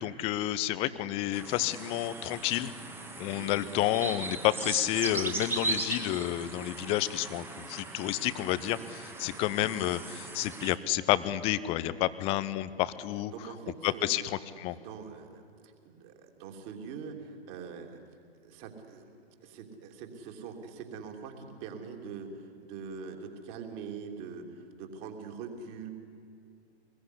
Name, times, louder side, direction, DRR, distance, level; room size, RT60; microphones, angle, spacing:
voice 1, 0.0-2.7 3.2-13.3 13.8-14.8, left 14 dB, 20° left, 16 dB, 0.7 m, -30 dB
sound 1, 1.3-10.8, right 3 dB, 5° right, 1.5 m, -38 dB
voice 2, 13.3-14.1 14.7-18.0 18.4-25.9, right 6 dB, 30° right, 3 dB, 3.1 m, -43 dB
25.0 x 21.0 x 9.8 m, 2.4 s
figure-of-eight pair, 120°, 32 cm